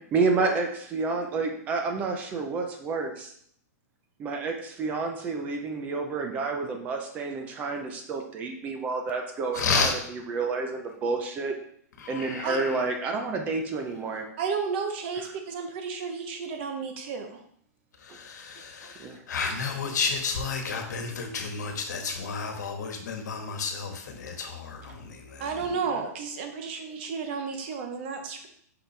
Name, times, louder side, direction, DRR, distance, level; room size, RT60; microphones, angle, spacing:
voice 1, 0.0-3.3 4.2-11.5 12.1-14.3 18.1-18.2 19.0-19.2, right 4 dB, 15° right, 4 dB, 0.5 m, -29 dB
voice 2, 9.5-10.0 12.0-12.8 18.0-25.7, left 5 dB, 80° left, 4 dB, 1.4 m, -31 dB
voice 3, 14.4-17.4 25.4-28.5, right 5 dB, 40° right, 5 dB, 0.9 m, -32 dB
5.8 x 5.7 x 3.3 m, 0.65 s
hypercardioid pair, 170°, 9 cm